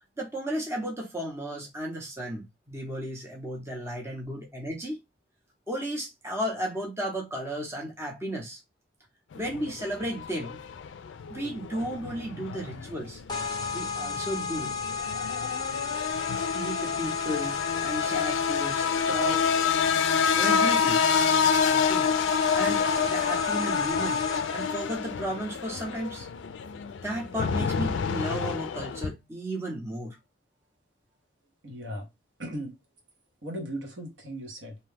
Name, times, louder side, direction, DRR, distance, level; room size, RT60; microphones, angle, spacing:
voice 1, 0.2-5.0 5.7-8.6 9.3-10.6 11.3-13.2 13.7-14.7 16.5-19.5 20.3-21.0 21.7-22.1 22.5-26.3 27.0-30.2, right 1 dB, 15° right, 0.7 m, -34 dB
sound 1, 9.3-29.1, left 6 dB, 70° left, 0.3 m, -28 dB
sound 2, 13.3-24.7, left 5 dB, 20° left, 0.5 m, -33 dB
voice 2, 31.6-32.1 32.4-32.7 33.4-34.8, right 1 dB, 70° right, 1.1 m, -37 dB
2.7 x 2.2 x 3.3 m
head